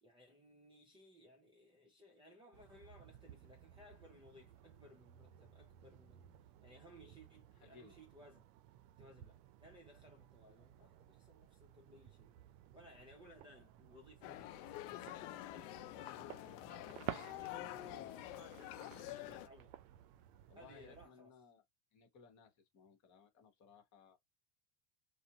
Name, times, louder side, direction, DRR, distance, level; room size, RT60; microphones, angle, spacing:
voice 1, 0.0-6.4 6.6-8.5 9.0-12.3 12.7-19.8 20.5-21.4, equal, 10° right, 0.6 m, -62 dB
sound 1, 2.5-21.1, right 13 dB, 75° right, 0.5 m, -55 dB
voice 2, 7.6-7.9 20.5-21.6 21.9-24.2, left 5 dB, 40° left, 1.1 m, -62 dB
sound 2, 14.2-19.5, left 15 dB, 65° left, 0.5 m, -48 dB
2.5 x 2.1 x 2.8 m
supercardioid pair, 125°, 46 cm